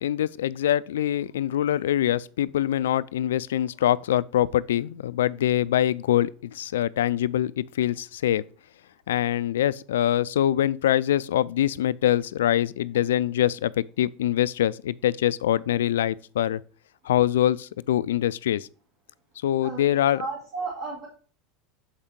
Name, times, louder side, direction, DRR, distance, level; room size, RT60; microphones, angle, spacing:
voice 1, 0.0-8.4 9.1-16.6 17.0-18.7 19.4-20.2, left 12 dB, 85° left, 0.3 m, -24 dB
voice 2, 19.6-21.1, right 4 dB, 55° right, 2.5 m, -34 dB
7.2 x 5.1 x 4.4 m
hypercardioid pair, 95°, 0 cm